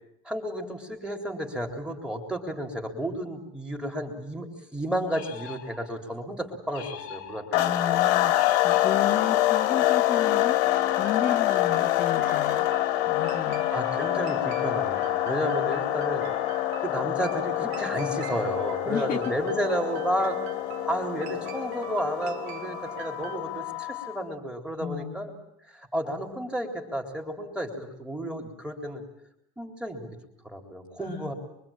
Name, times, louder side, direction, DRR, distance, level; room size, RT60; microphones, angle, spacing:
voice 1, 0.3-7.4 7.8-8.0 13.7-16.3 16.8-20.4 20.8-25.3 25.7-29.0 29.6-30.1 30.4-31.3, equal, 5° right, 2 dB, 3.6 m, -32 dB
sound 1, 5.1-6.1 6.7-7.7 8.3-9.5, left 8 dB, 45° left, 1.8 m, -42 dB
sound 2, 7.5-24.2, left 15 dB, 70° left, 2.7 m, -26 dB
voice 2, 7.5-12.7 13.1-13.7 15.2-15.5 18.9-19.3 24.8-25.3 31.0-31.3, left 8 dB, 25° left, 0 dB, 1.9 m, -34 dB
sound 3, 11.1-23.4, right 12 dB, 70° right, 2.2 m, -43 dB
24.5 x 24.5 x 8.9 m, 0.79 s
cardioid pair, 165°, 33 cm